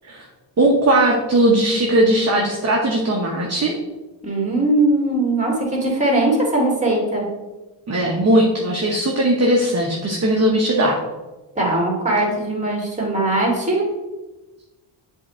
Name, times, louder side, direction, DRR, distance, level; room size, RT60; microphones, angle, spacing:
voice 1, 0.6-3.7 7.9-11.0, right 1 dB, 30° right, -1 dB, 1.0 m, -18 dB
voice 2, 4.2-7.3 11.6-13.8, right 2 dB, 15° right, -2 dB, 2.3 m, -20 dB
7.6 x 3.7 x 4.3 m, 1.1 s
cardioid pair, 110°, 49 cm